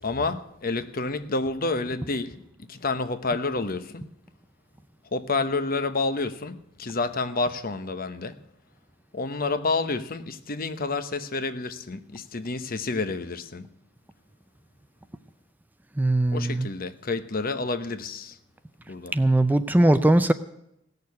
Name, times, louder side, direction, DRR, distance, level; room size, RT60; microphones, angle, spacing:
voice 1, 0.0-2.4 2.7-4.0 5.1-8.4 9.1-13.7 16.3-18.4 18.9-19.1, left 3 dB, 50° left, 1.0 m, -29 dB
voice 2, 16.0-16.7 19.1-20.3, right 1 dB, 10° right, 0.4 m, -20 dB
17.5 x 6.8 x 9.5 m
head